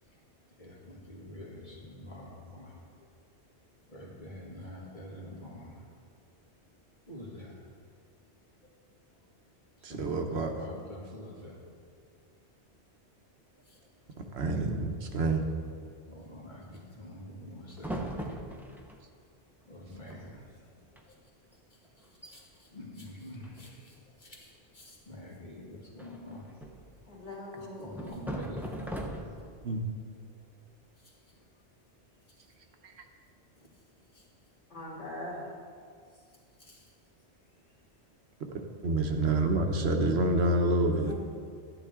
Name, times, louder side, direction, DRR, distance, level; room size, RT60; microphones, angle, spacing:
voice 1, 0.6-2.8 3.9-5.9 7.1-7.6 9.8-12.0 13.6-13.9 16.1-18.2 19.7-20.6 21.1-21.2 21.7-26.5 27.5-28.8 29.4-29.5 31.0-31.4 33.6-33.7 34.1-34.3 36.6-36.9, left 1 dB, 45° left, -3 dB, 2.0 m, -47 dB
voice 2, 9.8-10.5 14.3-15.4 29.6-29.8 32.8-32.9 38.8-41.1, right 2 dB, 70° right, 4 dB, 1.1 m, -27 dB
sound 1, 17.8-19.0 19.8-19.9 20.1-20.5 20.8-21.0 21.5-21.6 22.0-22.4 23.4-24.0 26.0-26.9 27.9-29.6, right 1 dB, ahead, 0.7 m, -39 dB
voice 3, 27.1-28.1 34.7-35.5 40.9-41.1, left 1 dB, 80° left, -5 dB, 3.0 m, -41 dB
12.0 x 10.0 x 3.6 m, 2.2 s
omnidirectional pair, 1.1 m